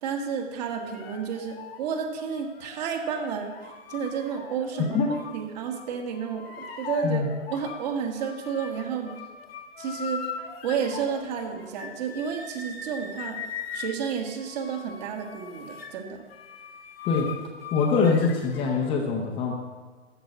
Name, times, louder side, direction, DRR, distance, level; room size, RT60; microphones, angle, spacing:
voice 1, 0.0-5.0 5.3-7.2 7.5-9.1 9.8-10.3 10.6-13.4 13.7-16.2, right 6 dB, 35° right, 3 dB, 1.6 m, -31 dB
sound 1, 0.7-5.4 5.7-7.9 8.2-19.0, left 6 dB, 50° left, 1.4 m, -40 dB
voice 2, 4.8-5.1 7.0-7.3 17.0-17.3 17.7-19.5, left 4 dB, 15° left, 0 dB, 0.8 m, -24 dB
13.5 x 5.0 x 8.2 m, 1.4 s
figure-of-eight pair, 130°, 38 cm